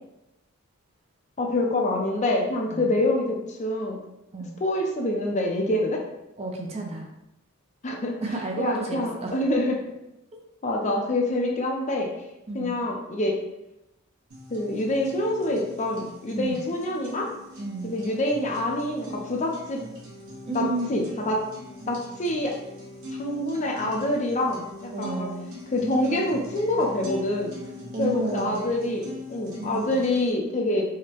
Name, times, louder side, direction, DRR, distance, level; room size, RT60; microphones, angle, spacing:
voice 1, 1.4-4.0 4.6-6.0 7.8-8.2 8.6-9.8 10.6-12.1 12.5-13.4 14.5-17.3 17.8-19.8 20.5-21.4 21.9-22.6 23.2-25.3 25.7-27.5 28.0-30.8, left 1 dB, 35° left, 0 dB, 0.5 m, -26 dB
voice 2, 6.4-7.1 8.2-9.4 12.5-12.7 16.3-16.6 17.6-17.9 20.4-21.1 24.9-25.5 27.9-28.7 29.6-30.0, right 3 dB, 30° right, 1 dB, 0.5 m, -32 dB
sound 1, 14.3-30.3, left 1 dB, 70° right, 1.0 m, -41 dB
4.8 x 2.1 x 2.9 m, 0.89 s
head